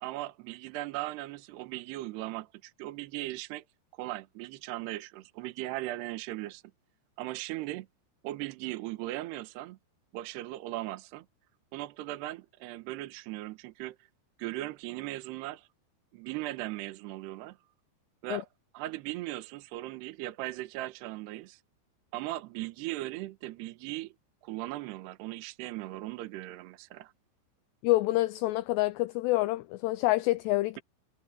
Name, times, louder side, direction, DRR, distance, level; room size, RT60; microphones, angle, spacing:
voice 1, 0.0-3.6 4.0-6.6 7.2-7.9 8.2-9.8 10.1-11.3 11.7-14.0 14.4-15.7 16.1-17.6 18.2-18.5 18.7-21.6 22.1-24.1 24.4-27.1, right 17 dB, 70° right, 3.0 m, -38 dB
voice 2, 27.8-30.8, left 19 dB, 85° left, 2.4 m, -27 dB
omnidirectional pair, 5.4 m